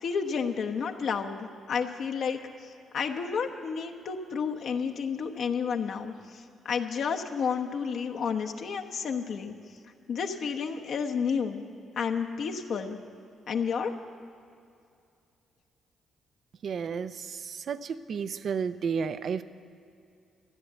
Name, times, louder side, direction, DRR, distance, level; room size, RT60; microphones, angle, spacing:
voice 1, 0.0-9.5 10.1-11.6 12.0-13.0 13.5-13.9, left 6 dB, 65° left, 3 dB, 1.0 m, -31 dB
voice 2, 16.6-19.4, right 6 dB, 55° right, 12 dB, 0.5 m, -32 dB
13.5 x 10.0 x 8.1 m, 2.4 s
cardioid pair, 90°, 0 cm